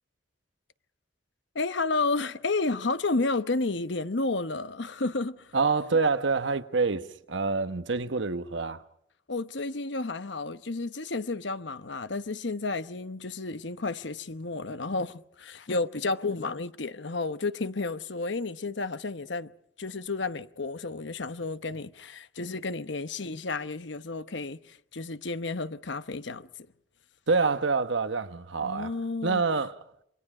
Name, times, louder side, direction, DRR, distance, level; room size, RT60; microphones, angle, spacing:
voice 1, 1.5-5.5 9.3-19.5 19.8-26.7 28.6-29.4, left 3 dB, 65° left, 1.0 m, -31 dB
voice 2, 5.5-8.8 27.3-28.9 29.2-29.8, right 4 dB, 70° right, 1.1 m, -26 dB
28.0 x 24.5 x 5.0 m
head